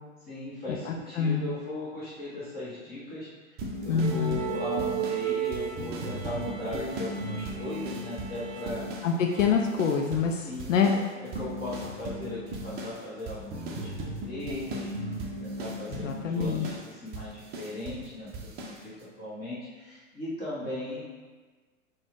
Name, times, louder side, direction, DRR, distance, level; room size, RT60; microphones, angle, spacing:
voice 1, 0.3-3.3 3.8-8.8 10.4-10.8 11.3-13.9 14.2-15.1 15.4-18.3 18.6-21.0, left 1 dB, 25° left, -9 dB, 1.3 m, -37 dB
voice 2, 0.9-1.5 3.9-4.4 9.0-10.9 15.9-16.7, left 6 dB, 70° left, 2 dB, 0.6 m, -26 dB
sound 1, 3.6-9.1 9.4-10.3 10.6-18.1 18.3-18.8, right 1 dB, 25° right, 0.6 m, -37 dB
sound 2, 4.0-10.4 10.7-11.0, right 10 dB, 80° right, 0.6 m, -36 dB
4.0 x 2.4 x 4.6 m, 1.4 s
hypercardioid pair, 105°, 39 cm